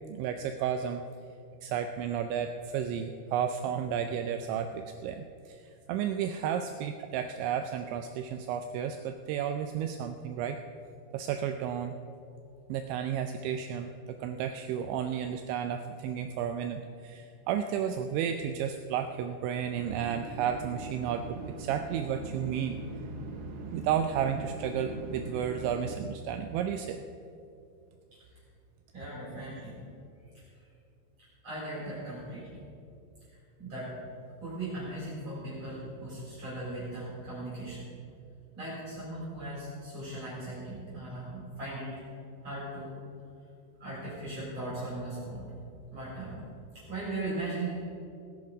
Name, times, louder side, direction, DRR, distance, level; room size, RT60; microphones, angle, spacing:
voice 1, 0.1-1.0 1.6-5.6 5.9-10.6 11.1-12.0 12.7-22.8 23.7-27.0, right 8 dB, 85° right, 7 dB, 2.6 m, -32 dB
sound 1, 19.8-26.0, right 3 dB, 70° right, 3.3 m, -41 dB
voice 2, 28.9-29.7 31.4-32.4 33.6-33.9 34.4-37.8 38.5-41.9 42.4-42.9 43.8-45.4 45.9-46.4 46.9-47.8, right 2 dB, 35° right, -8 dB, 4.6 m, -38 dB
17.5 x 10.5 x 4.8 m, 2.6 s
omnidirectional pair, 5.8 m